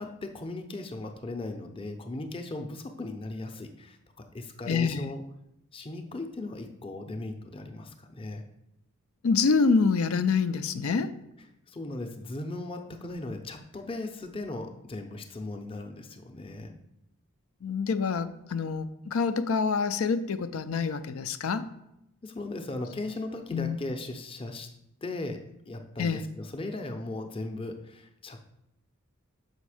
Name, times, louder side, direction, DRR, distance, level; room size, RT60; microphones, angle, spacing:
voice 1, 0.0-4.0 4.3-5.2 5.7-8.4 11.7-16.7 21.4-21.5 22.2-24.7 25.0-25.4 25.7-28.5, left 2 dB, 25° left, 4 dB, 0.6 m, -37 dB
voice 2, 4.7-5.1 9.2-11.1 17.6-21.7 23.5-23.8 26.0-26.2, left 5 dB, 80° left, 12 dB, 0.5 m, -26 dB
6.4 x 5.1 x 4.9 m, 0.84 s
head